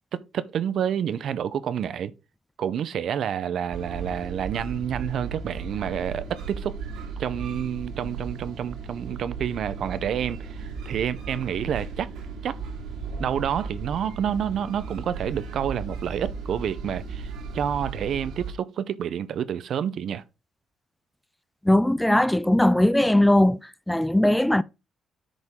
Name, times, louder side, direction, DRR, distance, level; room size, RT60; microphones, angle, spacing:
voice 1, 0.1-2.1 2.6-6.8 7.2-12.1 12.4-12.6 13.2-20.2, right 9 dB, 65° right, 0.6 m, -29 dB
sound 1, 3.7-18.5, right 5 dB, 80° right, 2.3 m, -36 dB
voice 2, 21.6-23.6 23.9-24.6, left 1 dB, 5° left, 0.3 m, -19 dB
9.5 x 5.1 x 3.6 m
cardioid pair, 90°, 0 cm